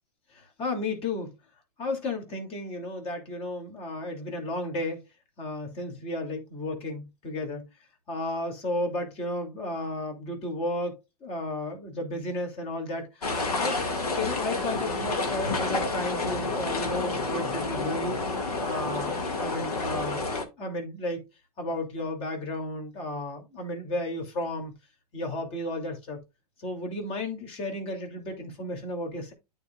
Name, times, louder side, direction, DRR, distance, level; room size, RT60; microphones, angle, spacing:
voice 1, 0.3-1.3 1.8-5.1 5.4-7.7 8.1-10.9 11.2-13.8 14.1-18.2 18.6-20.2 20.6-21.2 21.6-24.7 25.1-26.2 26.6-29.3, left 2 dB, 30° left, 2.6 m, -33 dB
sound 1, 13.2-20.4, left 3 dB, 70° left, 1.9 m, -29 dB
12.5 x 4.5 x 2.3 m
figure-of-eight pair, 105°, 20 cm